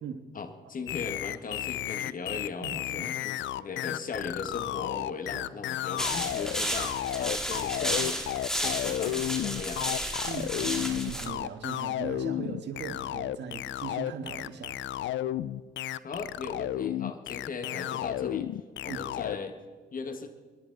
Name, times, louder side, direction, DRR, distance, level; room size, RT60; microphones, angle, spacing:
voice 1, 0.3-10.0 16.0-18.5 18.8-19.6 19.9-20.3, left 4 dB, 45° left, 7 dB, 1.5 m, -38 dB
sound 1, 0.9-19.4, left 13 dB, 70° left, 0.5 m, -33 dB
voice 2, 2.6-3.1 5.3-5.4 10.2-14.8 18.9-19.1, right 6 dB, 60° right, 6 dB, 1.7 m, -39 dB
sound 2, 6.0-11.3, equal, 5° left, 2.2 m, -32 dB
29.5 x 10.5 x 4.0 m, 1.5 s
cardioid pair, 90°, 20 cm